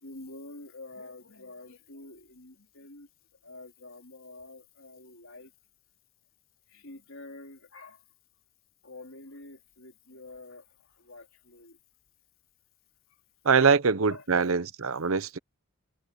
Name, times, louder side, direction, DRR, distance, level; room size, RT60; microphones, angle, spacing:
voice 1, 0.0-3.1 3.4-5.5 6.7-8.0 8.8-10.7 10.9-11.8 13.6-13.8 14.1-14.2, left 2 dB, 65° left, 3.9 m, -47 dB
voice 2, 13.4-15.4, right 5 dB, 70° right, 0.8 m, -23 dB
head